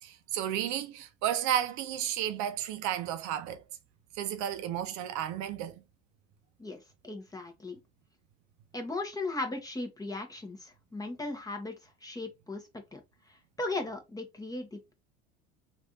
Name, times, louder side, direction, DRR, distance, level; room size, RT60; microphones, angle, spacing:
voice 1, 0.0-3.6 4.2-5.8, right 10 dB, 60° right, 0.6 m, -32 dB
voice 2, 6.6-7.8 8.7-13.0 13.3-14.9, left 2 dB, 10° left, 1.0 m, -37 dB
3.2 x 2.6 x 2.7 m
supercardioid pair, 95°, 32 cm